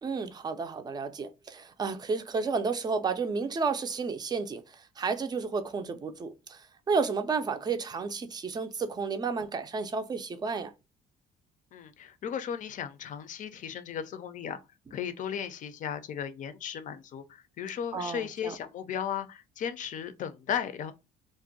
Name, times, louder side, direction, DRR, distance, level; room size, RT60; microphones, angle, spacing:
voice 1, 0.0-10.7 17.9-18.6, right 4 dB, 25° right, 0.4 m, -32 dB
voice 2, 11.7-14.6 14.9-20.9, left 8 dB, 50° left, 0.5 m, -36 dB
2.5 x 2.1 x 3.9 m
cardioid pair, 110°, 17 cm